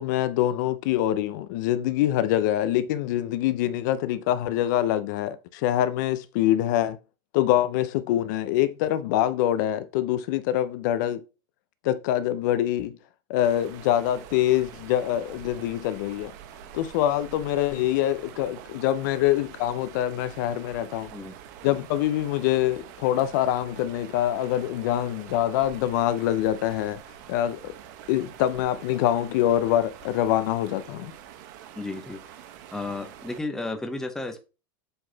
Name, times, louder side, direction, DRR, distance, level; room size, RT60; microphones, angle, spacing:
voice 1, 0.0-7.0 7.3-11.2 11.8-13.0 13.3-16.3 16.7-21.1 21.6-27.0 27.3-27.7 28.1-31.1, left 12 dB, 50° left, 0.4 m, -25 dB
sound 1, 13.4-33.4, right 9 dB, 50° right, 0.9 m, -46 dB
voice 2, 31.8-32.2 32.7-34.4, left 2 dB, 5° left, 0.7 m, -33 dB
7.7 x 3.8 x 3.9 m
supercardioid pair, 175°, 12 cm